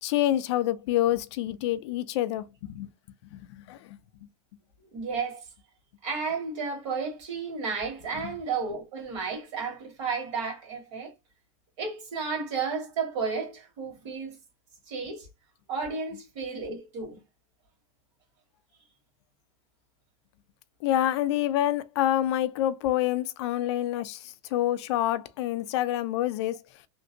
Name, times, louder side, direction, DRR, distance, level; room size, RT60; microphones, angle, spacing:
voice 1, 0.0-2.9 3.3-4.0 8.2-8.3 20.8-26.6, left 13 dB, 60° left, 0.4 m, -27 dB
voice 2, 4.9-5.5 6.0-11.1 11.8-14.4 14.9-15.3 15.7-17.2, right 5 dB, 65° right, 1.8 m, -32 dB
3.1 x 2.5 x 2.6 m
supercardioid pair, 175°, 16 cm